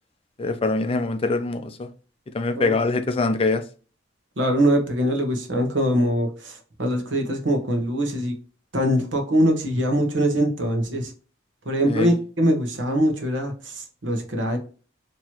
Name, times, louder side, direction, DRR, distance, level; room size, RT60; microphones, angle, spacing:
voice 1, 0.4-1.9 2.3-3.6 11.9-12.1, left 3 dB, 30° left, 0.4 m, -23 dB
voice 2, 4.4-8.3 8.7-11.1 11.6-14.6, equal, 80° right, 1.1 m, -23 dB
4.4 x 3.0 x 2.9 m
head